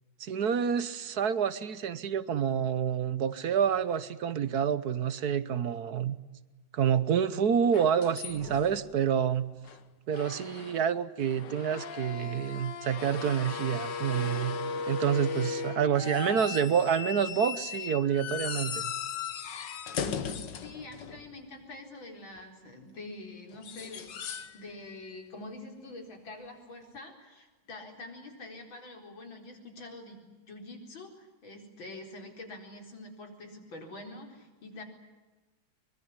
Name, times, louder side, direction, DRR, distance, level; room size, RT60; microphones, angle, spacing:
voice 1, 0.2-6.2 6.7-9.5 10.1-18.9, right 8 dB, 55° right, 15 dB, 1.4 m, -28 dB
sound 1, 7.7-9.0 9.6-9.8 10.1-10.9 11.2-21.5 23.5-24.6 24.8-25.2 27.0-27.1, left 6 dB, 65° left, 1.9 m, -37 dB
voice 2, 20.6-34.8, left 2 dB, 90° left, 3 dB, 5.0 m, -46 dB
24.0 x 22.5 x 9.8 m, 1.2 s
omnidirectional pair, 2.1 m